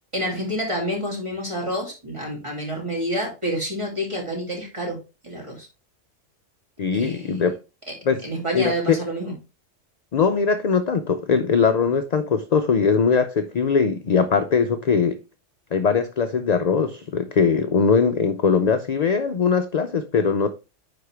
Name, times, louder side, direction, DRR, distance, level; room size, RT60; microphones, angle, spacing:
voice 1, 0.1-5.0 5.2-5.7 6.9-7.3 8.2-9.3, equal, 25° right, 2.8 m, -28 dB
voice 2, 6.8-7.6 8.1-8.2 8.5-9.0 10.1-15.2 15.7-20.5, left 5 dB, 55° left, 0.5 m, -21 dB
9.6 x 4.3 x 3.3 m
omnidirectional pair, 1.3 m